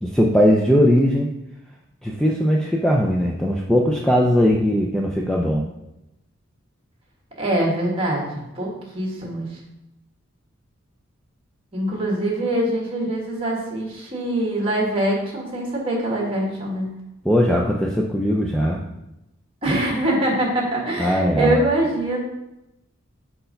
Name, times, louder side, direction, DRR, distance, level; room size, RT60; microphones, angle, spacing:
voice 1, 0.0-1.3 2.0-5.6 17.2-18.8 21.0-21.6, equal, 5° left, -2 dB, 0.4 m, -19 dB
voice 2, 7.4-9.5 11.7-16.9 19.6-22.2, right 1 dB, 25° right, -1 dB, 1.5 m, -23 dB
4.6 x 4.4 x 5.2 m, 0.91 s
head